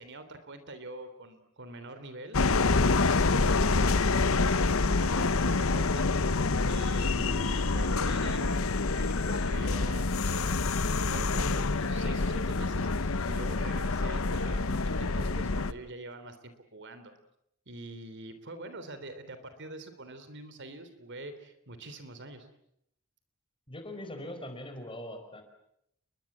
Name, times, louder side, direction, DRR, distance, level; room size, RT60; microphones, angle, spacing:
voice 1, 0.0-6.1 6.7-10.6 10.9-17.1 17.7-22.5, right 2 dB, 55° right, 10 dB, 3.4 m, -45 dB
sound 1, 2.3-15.7, left 3 dB, 70° left, 1.0 m, -27 dB
voice 2, 23.7-25.4, left 1 dB, 25° left, 7 dB, 5.0 m, -41 dB
30.0 x 22.5 x 7.4 m, 0.75 s
head